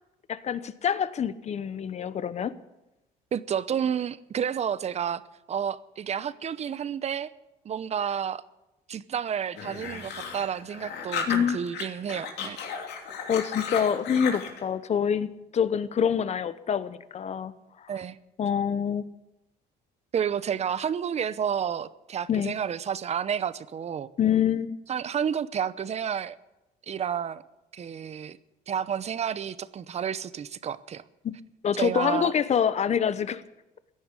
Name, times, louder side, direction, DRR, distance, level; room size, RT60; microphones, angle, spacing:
voice 1, 0.3-2.5 11.3-11.6 13.3-17.5 18.4-19.0 22.3-22.5 24.2-24.8 31.2-31.3 31.6-33.4, left 8 dB, 40° left, 15 dB, 0.9 m, -26 dB
voice 2, 3.3-5.2 5.5-7.3 7.6-8.4 8.9-12.6 17.9-18.2 20.1-24.1 24.9-26.4 26.9-27.4 27.7-28.4 28.7-31.0 31.8-32.3, right 8 dB, 40° right, 16 dB, 0.8 m, -30 dB
sound 1, 9.6-11.8 12.1-14.6, left 7 dB, 80° left, 3.0 m, -34 dB
16.5 x 10.5 x 8.2 m, 0.96 s
cardioid pair, 110°, 17 cm